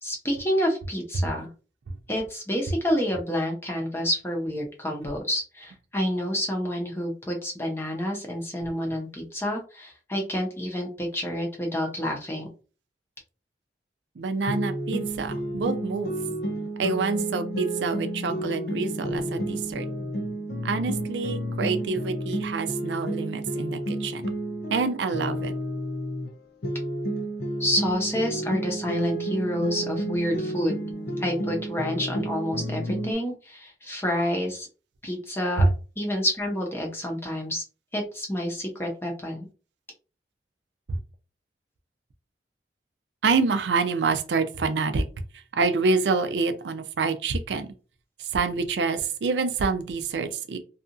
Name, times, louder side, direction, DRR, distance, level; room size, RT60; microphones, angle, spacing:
voice 1, 0.0-1.5 2.1-12.5 27.6-30.8 31.2-34.7 35.0-35.6 36.0-37.6 37.9-39.5, equal, 15° left, 0 dB, 0.7 m, -28 dB
voice 2, 14.2-16.1 16.8-19.9 20.6-24.3 24.7-25.5 35.6-35.7 40.9-41.0 43.2-45.0 45.5-47.7 48.2-50.6, right 4 dB, 85° right, 8 dB, 0.4 m, -26 dB
sound 1, 14.5-26.3 26.6-33.1, right 1 dB, 60° left, 0.5 m, -31 dB
2.8 x 2.4 x 2.5 m, 0.35 s
head